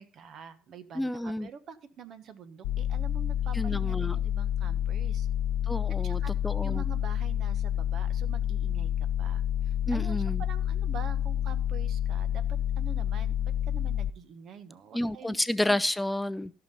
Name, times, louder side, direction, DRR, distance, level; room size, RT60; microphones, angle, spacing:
voice 1, 0.0-5.3 6.0-6.3 6.6-15.4, right 7 dB, 50° right, 11 dB, 1.3 m, -46 dB
voice 2, 1.0-1.5 3.5-4.2 5.7-6.8 9.9-10.4 14.9-16.5, left 1 dB, 10° left, 15 dB, 0.5 m, -30 dB
sound 1, 2.6-14.1, left 10 dB, 65° left, 0.5 m, -29 dB
14.5 x 6.0 x 5.3 m, 0.39 s
hypercardioid pair, 60°, 0 cm